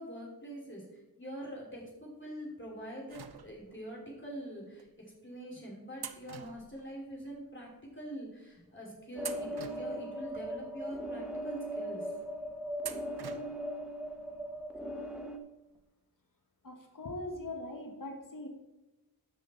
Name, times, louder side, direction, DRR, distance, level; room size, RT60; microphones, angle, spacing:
voice 1, 0.0-12.1, equal, 30° left, -3 dB, 3.0 m, -44 dB
sound 1, 3.1-3.9 4.8-4.9 6.0-7.4 7.7-7.8 8.5-8.8 9.2-10.5 11.0-11.1 12.8-13.8 14.1-14.2 15.3-15.4 15.7-15.8, right 7 dB, 85° right, 0.6 m, -47 dB
sound 2, 9.2-15.4, equal, ahead, 0.8 m, -39 dB
voice 2, 16.6-18.5, left 2 dB, 60° left, 3 dB, 1.2 m, -41 dB
12.5 x 5.4 x 4.3 m, 0.99 s
wide cardioid pair, 40°, 37 cm